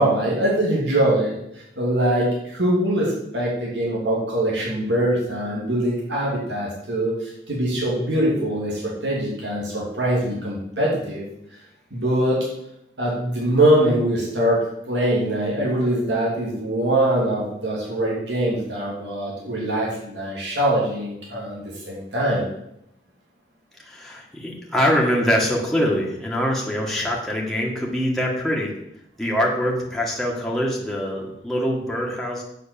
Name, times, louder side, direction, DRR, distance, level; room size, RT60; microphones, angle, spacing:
voice 1, 0.0-1.4 1.8-11.2 11.9-12.5 13.0-22.5, right 1 dB, 85° right, -4 dB, 2.9 m, -23 dB
voice 2, 23.8-28.7 29.2-32.4, equal, ahead, -3 dB, 1.7 m, -24 dB
8.1 x 5.7 x 7.0 m, 0.79 s
head